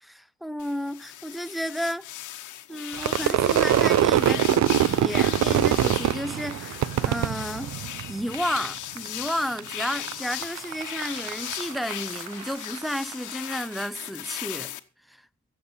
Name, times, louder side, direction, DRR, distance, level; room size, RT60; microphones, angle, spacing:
voice 1, 0.0-2.1 2.7-7.7 8.1-14.7 15.1-15.2, equal, ahead, 0.5 m, -32 dB
sound 1, 0.6-14.8, left 13 dB, 75° left, 1.1 m, -37 dB
Crowd / Fireworks, 3.0-8.3 8.6-9.3 9.6-13.1, right 11 dB, 65° right, 0.7 m, -24 dB
15.5 x 7.3 x 5.4 m
cardioid pair, 90°, 30 cm